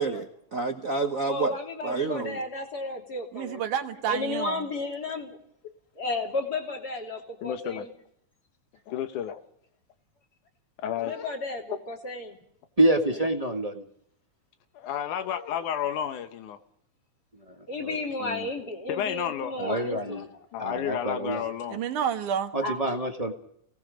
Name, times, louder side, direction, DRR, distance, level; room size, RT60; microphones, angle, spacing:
voice 1, 0.0-1.6 1.8-2.4, right 4 dB, 65° right, 5 dB, 0.8 m, -29 dB
voice 2, 1.2-3.6 4.1-5.4 6.0-7.9 11.0-12.4 13.1-13.3 17.7-20.2 22.6-22.8, left 2 dB, 30° left, 2 dB, 3.6 m, -33 dB
voice 3, 3.3-4.7 21.7-22.5, right 8 dB, 90° right, 6 dB, 3.0 m, -29 dB
voice 4, 7.4-7.9 8.9-9.4 10.8-11.4 14.8-16.6 18.2-18.5 18.9-19.5 20.2-21.8, left 9 dB, 90° left, 9 dB, 2.6 m, -32 dB
voice 5, 12.8-13.8 17.8-18.0 19.6-20.3 20.6-21.4 22.5-23.3, right 1 dB, 20° right, 4 dB, 1.1 m, -26 dB
29.0 x 18.5 x 5.2 m, 0.71 s
omnidirectional pair, 3.4 m